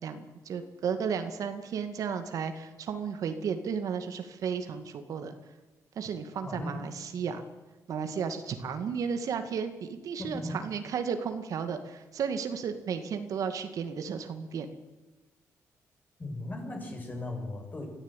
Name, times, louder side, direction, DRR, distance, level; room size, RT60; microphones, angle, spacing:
voice 1, 0.0-5.3 6.0-7.4 7.9-14.7, right 6 dB, 70° right, 8 dB, 2.1 m, -33 dB
voice 2, 6.4-6.8 7.2-7.3 10.2-10.6 16.2-17.9, left 1 dB, 30° left, 2 dB, 6.4 m, -37 dB
23.0 x 14.5 x 9.1 m, 1.1 s
cardioid pair, 100°, 6 cm